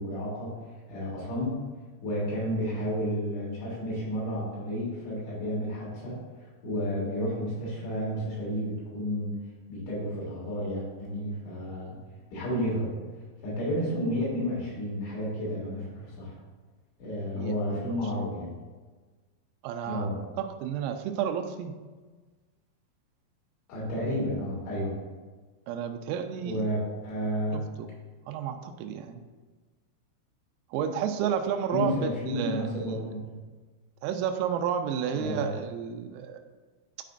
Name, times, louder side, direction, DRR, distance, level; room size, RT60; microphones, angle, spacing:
voice 1, 0.0-1.6 2.0-9.3 9.7-12.0 12.3-12.9 13.4-16.3 17.0-18.5 19.9-20.2 23.7-24.9 26.4-27.6 31.7-33.4 35.1-35.5, equal, 65° left, -7 dB, 4.6 m, -31 dB
voice 2, 19.6-20.1 20.4-21.7 25.7-26.7 27.5-27.9 28.3-29.2 30.7-33.1 34.0-36.4, right 8 dB, 90° right, 5 dB, 3.2 m, -31 dB
12.5 x 5.0 x 2.5 m, 1.4 s
omnidirectional pair, 5.8 m